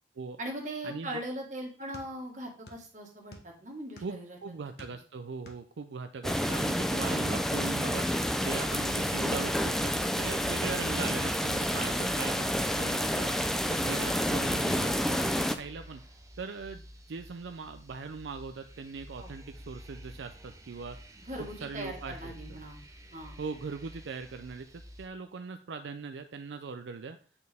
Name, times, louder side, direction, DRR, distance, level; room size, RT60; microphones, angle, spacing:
voice 1, 0.4-4.7 14.0-14.2 19.2-19.3 21.2-22.8 23.1-23.3, right 1 dB, 40° right, 1 dB, 1.7 m, -40 dB
sound 1, 1.9-2.9 3.1-4.3 4.8-6.6 7.1-7.7 8.0-8.2, left 1 dB, 60° left, 1.2 m, -51 dB
voice 2, 4.0-8.1 8.4-13.3 13.7-16.0 16.4-21.0 21.6-22.3 23.4-27.2, right 4 dB, 80° right, 8 dB, 0.4 m, -40 dB
sound 2, 6.2-15.6, equal, ahead, 0.4 m, -29 dB
sound 3, 7.3-25.1, equal, 20° right, 0.7 m, -49 dB
8.5 x 4.4 x 3.5 m, 0.41 s
head